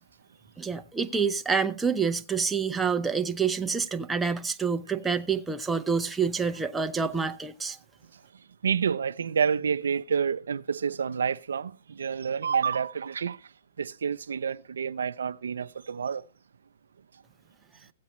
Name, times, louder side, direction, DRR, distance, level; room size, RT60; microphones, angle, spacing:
voice 1, 0.6-7.8, right 5 dB, 10° right, 0.5 m, -27 dB
voice 2, 8.6-13.4 13.8-16.2, right 6 dB, 85° right, 0.5 m, -28 dB
15.5 x 8.3 x 3.1 m
hypercardioid pair, 145°, 0 cm